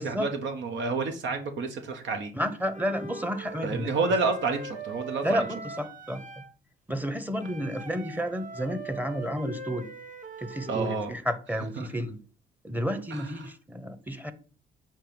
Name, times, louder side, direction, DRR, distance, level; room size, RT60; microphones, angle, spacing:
voice 1, 0.0-2.3 3.6-5.4 10.7-11.2 11.8-11.9 13.1-13.3, right 4 dB, 70° right, 1.1 m, -29 dB
voice 2, 2.3-3.9 5.2-6.4 6.9-9.9 10.4-12.2 12.6-14.3, equal, 10° right, 0.9 m, -31 dB
Wind instrument woodwind instrument, 2.7-6.5 7.4-11.0, right 3 dB, 40° right, 1.0 m, -41 dB
7.4 x 3.0 x 5.1 m
cardioid pair, 90°, 20 cm